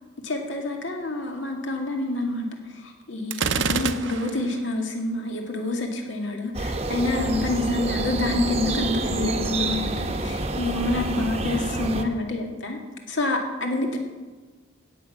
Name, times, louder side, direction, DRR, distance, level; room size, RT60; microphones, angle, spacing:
voice 1, 0.2-12.8 13.1-14.0, left 2 dB, 70° left, 2 dB, 2.2 m, -27 dB
Gunshot gunfire, 3.3-4.5, right 6 dB, 70° right, 0.7 m, -26 dB
sound 1, 6.5-12.0, right 2 dB, 30° right, 0.9 m, -28 dB
16.5 x 8.0 x 5.9 m, 1.3 s
head